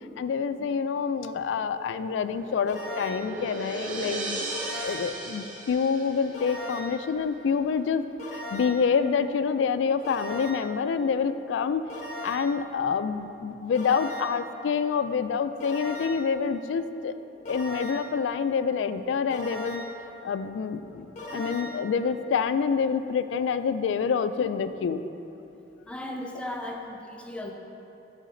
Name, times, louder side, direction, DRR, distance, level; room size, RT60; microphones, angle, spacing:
voice 1, 0.2-8.0 8.3-11.8 12.2-17.2 17.5-19.8 20.2-21.1 21.3-25.0, left 6 dB, 90° left, 12 dB, 0.3 m, -27 dB
sound 1, 1.6-6.8, right 1 dB, 45° right, 0.8 m, -37 dB
sound 2, 2.7-3.4 4.5-5.2 6.3-7.1 8.2-8.9 10.0-10.8 11.9-12.6 13.7-14.5 15.6-16.3 17.5-18.2 19.3-20.0 21.2-21.9, equal, 40° left, 1.0 m, -38 dB
voice 2, 25.9-27.5, left 1 dB, 5° left, 1 dB, 0.4 m, -37 dB
9.2 x 4.9 x 3.8 m, 2.9 s
head